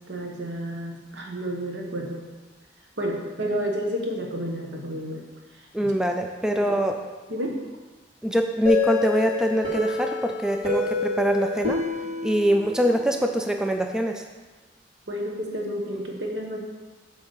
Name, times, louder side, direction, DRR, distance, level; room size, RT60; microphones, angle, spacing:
voice 1, 0.1-2.2 3.0-5.2 5.8-5.9 6.5-6.7 7.3-7.6 15.1-16.6, equal, 80° right, 1 dB, 1.3 m, -30 dB
voice 2, 5.7-7.0 8.2-11.8 12.2-14.2, right 1 dB, 5° right, 4 dB, 0.4 m, -23 dB
sound 1, 8.6-13.3, left 4 dB, 35° right, 2.6 m, -28 dB
7.9 x 3.6 x 6.5 m, 1.3 s
head